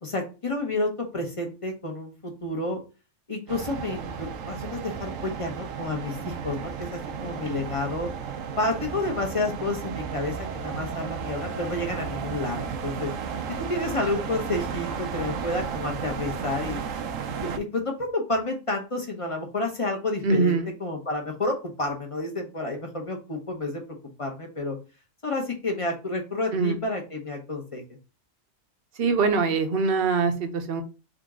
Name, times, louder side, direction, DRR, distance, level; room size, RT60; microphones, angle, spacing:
voice 1, 0.0-2.8 3.3-8.1 8.6-13.3 13.6-16.8 17.4-20.5 20.8-23.8 24.2-24.8 25.2-27.8, left 2 dB, 30° left, 2 dB, 0.9 m, -30 dB
sound 1, 3.5-17.6, right 6 dB, 80° right, 1.0 m, -33 dB
voice 2, 20.2-20.7 26.5-26.8 29.0-30.8, right 4 dB, 50° right, 7 dB, 0.9 m, -23 dB
3.9 x 3.6 x 3.6 m, 0.32 s
omnidirectional pair, 1.3 m